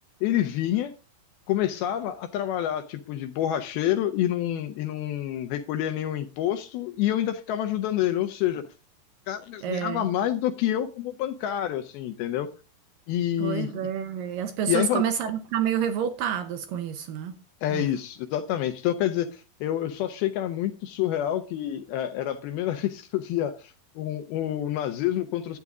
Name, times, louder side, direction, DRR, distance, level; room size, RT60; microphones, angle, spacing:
voice 1, 0.2-0.9 1.5-8.6 9.3-12.5 13.1-13.9 14.7-15.0 17.6-25.6, left 12 dB, 80° left, 2.3 m, -28 dB
voice 2, 9.6-10.1 13.4-17.3 17.7-17.8, right 9 dB, 85° right, 1.9 m, -28 dB
12.0 x 9.3 x 3.6 m
omnidirectional pair, 5.0 m